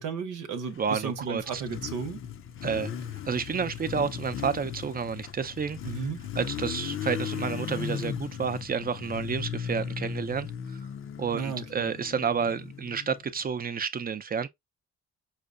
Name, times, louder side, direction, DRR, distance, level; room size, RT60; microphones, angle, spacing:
voice 1, 0.0-2.2 5.8-6.2 11.3-11.9, right 5 dB, 85° right, 0.9 m, -34 dB
Motorcycle, 0.8-13.5, left 9 dB, 45° left, 0.5 m, -37 dB
voice 2, 0.8-1.6 2.6-2.9 3.3-5.8 6.4-10.5 11.2-14.5, right 6 dB, 30° right, 0.5 m, -30 dB
5.6 x 2.1 x 2.4 m
cardioid pair, 90°, 30 cm